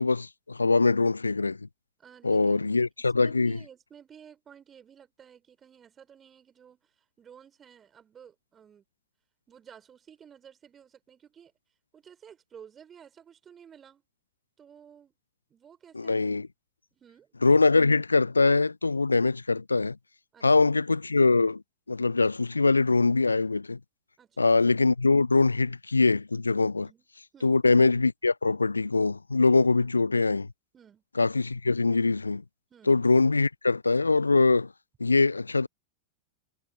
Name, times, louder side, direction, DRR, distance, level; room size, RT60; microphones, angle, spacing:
voice 1, 0.0-1.6 2.2-3.6 15.9-16.5 17.4-20.0 20.4-21.6 21.9-23.8 24.4-26.9 27.4-30.5 31.2-32.4 32.9-34.7 35.0-35.7, left 3 dB, 80° left, 0.6 m, -23 dB
voice 2, 2.0-2.8 3.2-8.8 9.5-11.5 11.9-14.0 14.6-15.1 15.5-16.2 16.9-17.3 20.3-20.7 24.2-24.6 26.8-27.1 27.3-27.6 30.7-31.0 32.7-33.0, right 8 dB, 25° right, 5.7 m, -53 dB
figure-of-eight pair, 90°, 0 cm